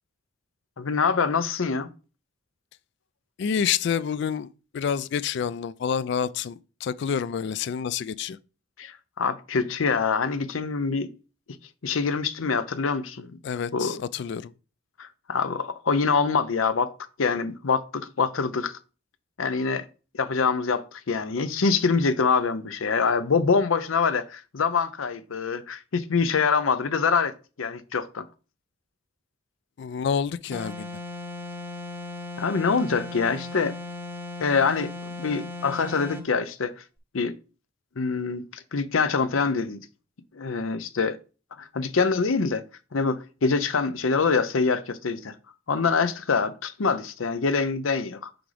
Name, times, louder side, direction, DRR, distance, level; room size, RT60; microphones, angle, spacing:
voice 1, 0.8-1.9 8.8-11.1 11.8-13.4 13.7-14.0 15.0-16.9 17.2-18.8 19.4-19.9 20.1-27.3 27.6-28.3 32.4-33.8 34.4-34.9 35.2-36.7 37.1-37.4 38.0-39.8 40.3-41.2 41.6-42.6 42.9-45.3 45.7-48.3, left 5 dB, 85° left, 0.7 m, -25 dB
voice 2, 3.4-4.5 4.7-8.4 13.4-14.5 29.8-30.9, left 7 dB, 60° left, 0.3 m, -28 dB
sound 1, 30.5-36.3, left 2 dB, 10° right, 0.7 m, -37 dB
5.9 x 5.0 x 3.4 m
head